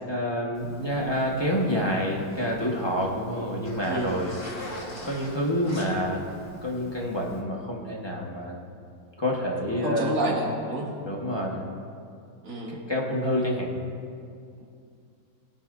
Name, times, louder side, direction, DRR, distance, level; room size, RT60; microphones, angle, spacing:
voice 1, 0.1-4.3 5.0-6.2 6.6-8.5 9.2-10.1 11.0-11.6 12.7-13.7, equal, 15° left, -3 dB, 1.2 m, -28 dB
Zipper (clothing), 0.5-7.4, equal, 45° left, 3.1 m, -43 dB
voice 2, 3.9-4.2 9.8-10.9 12.4-12.8, right 1 dB, 40° right, -4 dB, 2.5 m, -29 dB
22.0 x 10.0 x 2.6 m, 2.4 s
omnidirectional pair, 2.2 m